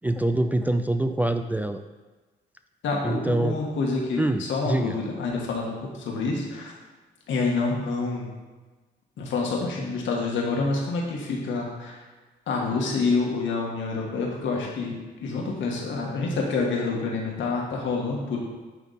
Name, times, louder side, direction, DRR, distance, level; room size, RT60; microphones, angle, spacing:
voice 1, 0.0-1.8 3.0-3.6 4.2-5.0, right 1 dB, 10° right, 7 dB, 0.3 m, -25 dB
voice 2, 2.8-6.7 7.3-8.3 9.2-12.0 12.5-18.4, left 3 dB, 70° left, -1 dB, 1.7 m, -27 dB
9.9 x 3.5 x 4.2 m, 1.2 s
cardioid pair, 90°, 20 cm